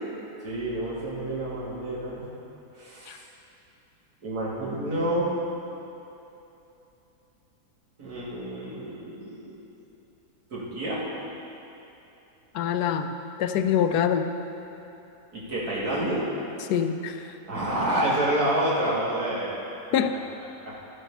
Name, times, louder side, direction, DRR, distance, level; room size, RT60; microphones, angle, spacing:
voice 1, 0.4-2.2 2.7-3.2 4.2-5.3 8.0-9.5 10.5-11.0 15.3-16.2 17.5-19.5 20.6-20.7, right 1 dB, 70° right, -8 dB, 3.0 m, -28 dB
voice 2, 12.5-13.1 13.4-14.3 16.7-17.2 19.9-20.2, left 8 dB, 80° left, 8 dB, 1.2 m, -24 dB
13.0 x 8.3 x 5.6 m, 2.9 s
omnidirectional pair, 1.7 m